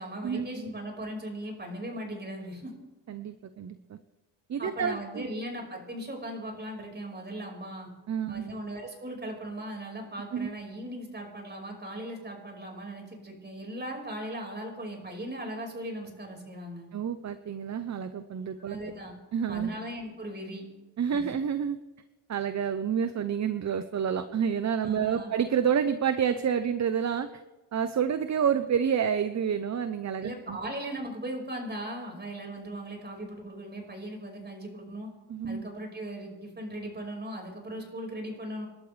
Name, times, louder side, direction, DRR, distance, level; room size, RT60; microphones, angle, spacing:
voice 1, 0.0-2.7 4.6-7.9 8.3-16.9 18.6-19.1 19.5-20.7 21.1-21.2 24.8-25.3 30.2-35.1 35.4-38.7, right 1 dB, 25° right, 1 dB, 5.4 m, -38 dB
voice 2, 3.1-4.0 4.5-5.3 8.1-8.4 10.3-10.5 16.9-18.8 19.3-19.7 21.0-21.8 22.3-27.4 27.7-30.6 35.3-35.6, right 7 dB, 40° right, 10 dB, 0.8 m, -29 dB
28.5 x 12.0 x 3.4 m, 1.2 s
cardioid pair, 115°, 42 cm